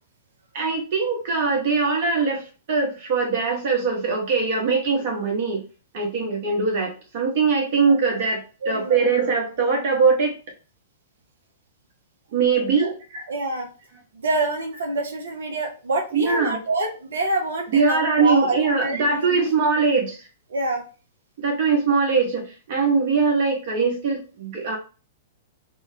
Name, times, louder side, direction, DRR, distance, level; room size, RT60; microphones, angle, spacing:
voice 1, 0.5-5.6 5.9-10.3 12.3-13.3 16.1-16.6 17.7-20.2 21.4-24.8, right 4 dB, 50° right, 1 dB, 0.8 m, -22 dB
voice 2, 8.6-9.0 12.8-12.9 13.3-13.7 14.1-19.4 20.5-20.8, right 2 dB, 65° right, 4 dB, 0.4 m, -26 dB
2.7 x 2.0 x 2.5 m, 0.35 s
figure-of-eight pair, 105°, 0 cm